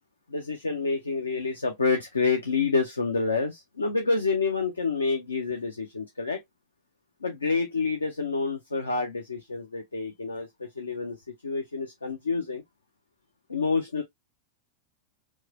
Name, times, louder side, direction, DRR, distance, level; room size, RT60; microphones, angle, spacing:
voice 1, 0.3-6.4 7.2-11.2 11.4-12.6 13.5-14.0, left 4 dB, 75° left, 0.6 m, -28 dB
4.6 x 2.2 x 2.7 m
figure-of-eight pair, 90°, 0 cm